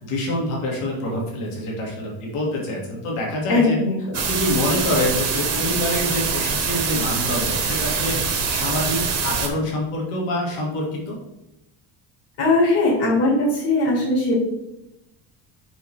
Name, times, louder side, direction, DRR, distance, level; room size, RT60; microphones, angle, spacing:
voice 1, 0.0-3.8 4.1-8.2 8.5-11.2, left 1 dB, 90° left, -2 dB, 2.2 m, -26 dB
voice 2, 3.5-3.9 12.4-14.3, left 2 dB, 55° left, -5 dB, 2.3 m, -19 dB
sound 1, 4.1-9.5, right 5 dB, 30° right, 0.9 m, -24 dB
5.8 x 5.4 x 3.3 m, 0.90 s
cardioid pair, 175°, 49 cm